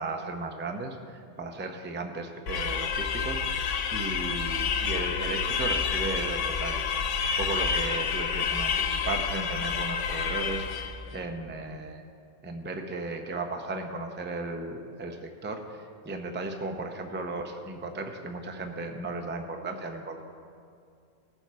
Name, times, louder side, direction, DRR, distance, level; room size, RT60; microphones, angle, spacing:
voice 1, 0.0-12.0 12.4-20.2, right 2 dB, 15° right, 4 dB, 0.5 m, -35 dB
sound 1, 2.5-11.0, left 6 dB, 80° left, 1.0 m, -29 dB
16.5 x 7.1 x 4.6 m, 2.4 s
omnidirectional pair, 1.3 m